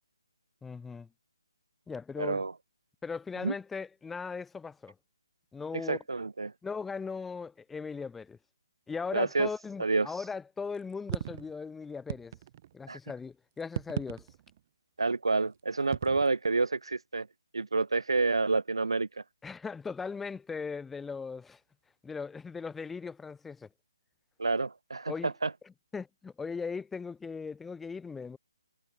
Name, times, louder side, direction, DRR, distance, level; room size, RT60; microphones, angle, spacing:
voice 1, 0.6-1.1 1.9-2.4 3.0-4.9 5.5-6.0 6.6-8.4 8.9-12.3 12.7-14.3 19.4-21.6 22.0-23.7 25.1-25.3 25.9-28.4, left 5 dB, 5° left, 1.1 m, -38 dB
voice 2, 2.2-2.5 3.4-3.5 5.7-6.5 9.1-9.5 9.8-10.2 12.9-13.0 15.0-17.3 17.5-19.2 24.4-25.5, right 3 dB, 85° right, 2.6 m, -29 dB
sound 1, 10.8-11.5 12.1-12.7 13.6-14.6 15.9-16.3, right 12 dB, 30° right, 1.9 m, -37 dB
hypercardioid pair, 165°, 3 cm